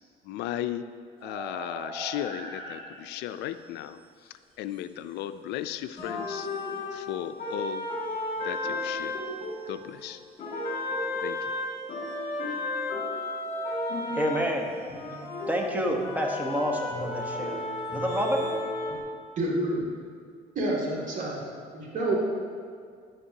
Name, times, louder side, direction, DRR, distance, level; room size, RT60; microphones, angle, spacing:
voice 1, 0.2-0.9 1.2-6.5 6.9-7.9 8.4-9.2 9.7-10.2 11.2-11.5, left 12 dB, 80° left, 12 dB, 0.4 m, -36 dB
sound 1, 1.2-3.9 4.7-4.8 5.8-6.7 8.5-10.6 11.3-11.4 11.9-12.2 14.6-14.7 15.1-15.6 17.9-18.6, right 2 dB, 30° right, 1.7 m, -44 dB
sound 2, 6.0-10.1 10.4-19.0, left 2 dB, 55° left, 2.2 m, -33 dB
voice 2, 14.1-14.7 15.5-17.6 17.9-18.4, equal, 10° right, 1 dB, 1.1 m, -28 dB
voice 3, 19.4-19.8 20.5-21.4 21.7-22.1, right 2 dB, 50° right, -4 dB, 2.4 m, -28 dB
10.0 x 8.7 x 2.8 m, 2.2 s
cardioid pair, 110°, 17 cm